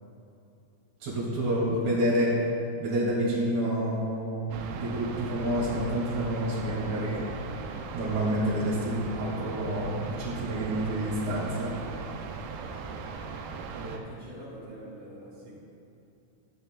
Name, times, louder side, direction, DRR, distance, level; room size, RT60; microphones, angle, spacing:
voice 1, 1.0-2.3 2.8-7.2 7.9-11.7, right 1 dB, 45° right, -8 dB, 3.5 m, -28 dB
voice 2, 1.8-2.3 13.7-15.6, right 1 dB, 65° right, -8 dB, 4.2 m, -44 dB
sound 1, 4.5-14.0, right 5 dB, 85° right, 2.7 m, -38 dB
14.0 x 10.5 x 2.4 m, 2.7 s
omnidirectional pair, 4.7 m